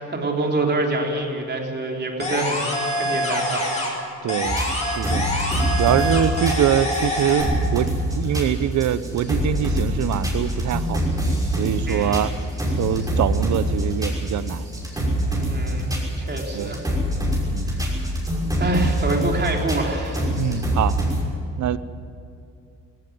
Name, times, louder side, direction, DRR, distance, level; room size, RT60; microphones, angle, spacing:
voice 1, 0.0-3.7 11.9-12.2 15.3-16.8 17.7-18.0 18.6-20.3, right 2 dB, 35° right, 3.9 m, -26 dB
sound 1, 2.2-4.0 4.3-7.4, left 1 dB, 25° left, 6.8 m, -25 dB
voice 2, 4.2-4.6 4.9-5.3 5.8-11.0 11.6-12.3 12.8-14.7 15.0-15.1 16.5-16.7 17.5-17.8 20.4-20.9 21.6-21.8, right 10 dB, 70° right, 0.8 m, -24 dB
sound 2, 4.4-21.2, equal, 10° right, 6.0 m, -25 dB
17.0 x 16.5 x 9.4 m
cardioid pair, 90°, 30 cm